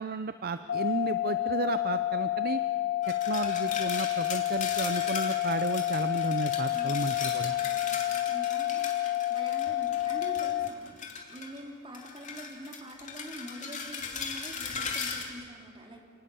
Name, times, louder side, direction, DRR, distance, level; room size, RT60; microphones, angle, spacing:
voice 1, 0.0-2.6 3.3-7.5, right 4 dB, 45° right, 11 dB, 0.6 m, -33 dB
sound 1, 0.7-10.7, left 14 dB, 55° left, 0.6 m, -29 dB
sound 2, 3.0-11.6 11.9-15.2, left 5 dB, 35° left, 2.7 m, -38 dB
voice 2, 6.7-16.0, equal, 25° right, 1 dB, 3.1 m, -45 dB
29.5 x 18.5 x 6.9 m, 2.3 s
head